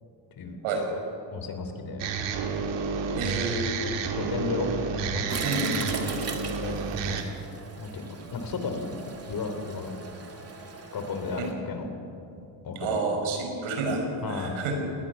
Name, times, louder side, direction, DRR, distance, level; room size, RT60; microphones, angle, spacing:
voice 1, 1.3-2.1 3.8-4.7 5.0-5.5 6.6-6.7 7.0-7.2 7.8-9.9 10.9-11.9 12.6-13.0 14.2-14.6, left 4 dB, 45° left, 6 dB, 3.4 m, -34 dB
sound 1, 2.0-7.2, right 5 dB, 65° right, 2.4 m, -30 dB
voice 2, 3.1-3.7 5.4-6.3 12.8-14.0 14.3-14.7, right 3 dB, 90° right, 3 dB, 5.2 m, -29 dB
Toilet flush, 5.3-11.5, right 4 dB, 30° right, 2.5 m, -39 dB
20.5 x 20.0 x 7.1 m, 2.7 s
cardioid pair, 115°, 47 cm